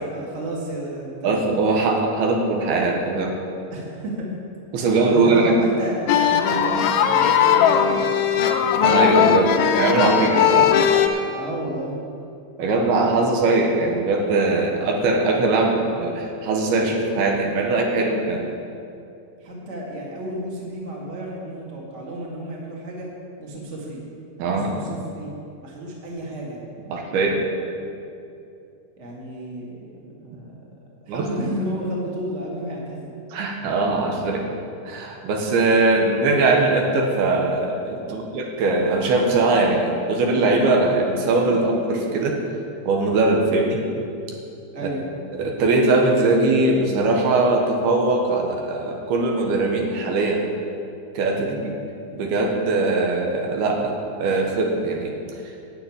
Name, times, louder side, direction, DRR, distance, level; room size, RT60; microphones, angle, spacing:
voice 1, 0.0-1.6 3.7-4.3 5.1-8.6 11.3-11.9 19.4-23.1 23.4-24.0 24.4-25.3 25.6-26.6 29.0-30.6 31.0-33.2 38.0-38.2 44.7-45.0 51.4-51.6, right 1 dB, 90° right, -3 dB, 0.6 m, -32 dB
voice 2, 1.2-3.4 4.7-5.5 8.8-10.9 12.6-18.4 24.4-24.8 26.9-27.4 31.1-31.3 33.3-34.5 34.9-42.4 42.9-43.8 44.8-44.9 45.4-50.4 51.1-51.7 52.1-55.1, right 3 dB, 70° right, 1 dB, 2.7 m, -21 dB
sound 1, 6.1-11.1, left 8 dB, 80° left, 3.1 m, -18 dB
11.0 x 6.9 x 9.5 m, 2.6 s
omnidirectional pair, 5.4 m